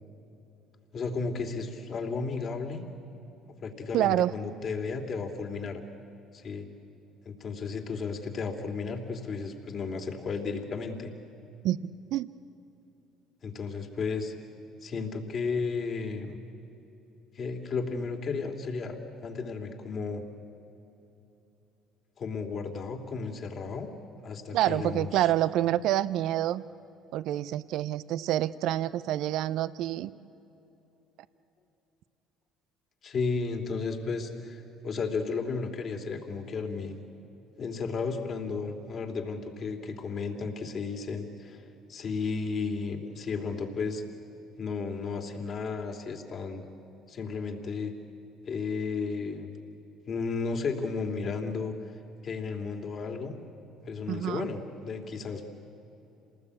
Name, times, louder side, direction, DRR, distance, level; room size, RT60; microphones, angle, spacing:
voice 1, 0.9-2.8 3.6-5.8 6.3-6.7 7.2-11.1 13.4-14.3 14.8-16.3 17.3-20.2 22.2-23.9 24.2-25.1 33.0-36.9 37.6-44.0 44.6-46.6 47.1-47.9 48.5-49.5 50.1-51.7 52.2-53.3 53.8-55.4, left 4 dB, 50° left, 4 dB, 3.1 m, -33 dB
voice 2, 3.9-4.3 11.6-12.3 24.5-26.6 27.1-30.1 54.1-54.5, right 13 dB, 70° right, 16 dB, 0.6 m, -27 dB
27.5 x 19.5 x 8.5 m, 3.0 s
supercardioid pair, 75°, 0 cm